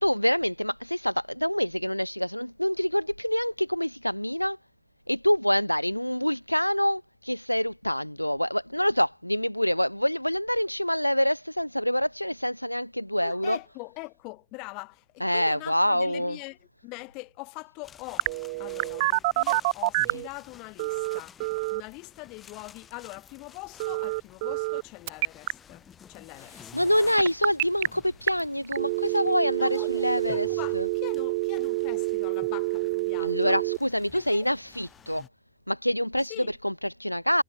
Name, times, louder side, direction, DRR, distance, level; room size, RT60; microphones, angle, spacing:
voice 1, 0.0-4.6 5.1-13.6 15.2-16.4 26.7-30.5 30.7-30.9 33.2-35.2 35.7-37.4, equal, 90° left, 0.7 m, -26 dB
voice 2, 13.2-26.9 29.6-33.6 34.1-34.5 36.3-36.6, left 28 dB, 45° left, 6.3 m, -43 dB
sound 1, 17.8-35.3, left 8 dB, 20° left, 5.1 m, -52 dB
Telephone, 18.2-20.3 20.8-21.8 23.8-24.8 25.1-25.5 27.2-27.9 28.3-28.4 28.7-33.8, right 25 dB, 50° right, 0.5 m, -27 dB
figure-of-eight pair, 90°, 0 cm